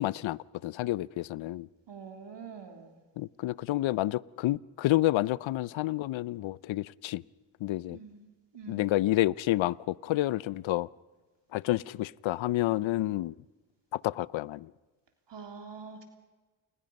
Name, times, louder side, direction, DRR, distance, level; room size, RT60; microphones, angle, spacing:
voice 1, 0.0-1.7 3.2-7.2 7.6-8.0 8.7-10.9 11.5-13.4 13.9-14.7, left 16 dB, 70° left, 0.7 m, -29 dB
voice 2, 1.9-3.0 7.9-8.3 8.5-8.9 15.3-16.0, right 5 dB, 60° right, 3.7 m, -45 dB
29.0 x 20.0 x 5.4 m
supercardioid pair, 55°, 48 cm